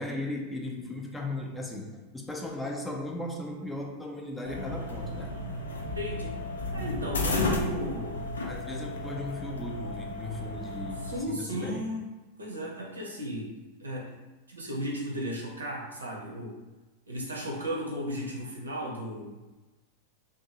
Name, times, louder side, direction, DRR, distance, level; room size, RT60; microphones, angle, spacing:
voice 1, 0.0-5.3 8.4-11.9, left 2 dB, 10° left, 0 dB, 0.4 m, -37 dB
sound 1, 4.4-11.2, left 2 dB, 70° left, 0.4 m, -33 dB
voice 2, 5.9-6.4 6.7-8.3 11.0-12.0 12.4-13.5 13.8-14.1 14.5-16.6 17.1-19.4, equal, 75° right, -2 dB, 0.6 m, -35 dB
2.6 x 2.5 x 2.7 m, 1.1 s
figure-of-eight pair, 90°, 0 cm